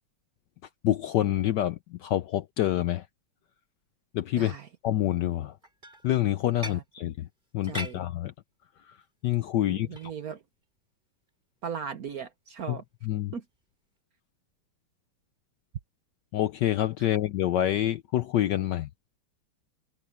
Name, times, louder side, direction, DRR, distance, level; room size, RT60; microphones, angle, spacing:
voice 1, 0.8-3.0 4.1-4.5 4.8-5.5 6.0-7.3 7.5-8.3 9.2-9.9 12.7-12.8 13.0-13.3 16.3-18.9, left 13 dB, 70° left, 1.0 m, -27 dB
voice 2, 4.4-4.7 6.6-6.8 7.7-8.0 9.7-10.4 11.6-12.8 13.3-13.4, right 7 dB, 55° right, 1.1 m, -37 dB
sound 1, 5.4-7.0 7.4-8.0 8.8-9.0 9.8-10.1 10.6-10.8 11.3-11.4 12.7-12.8 13.5-13.7, right 1 dB, 20° right, 7.6 m, -41 dB
omnidirectional pair, 2.4 m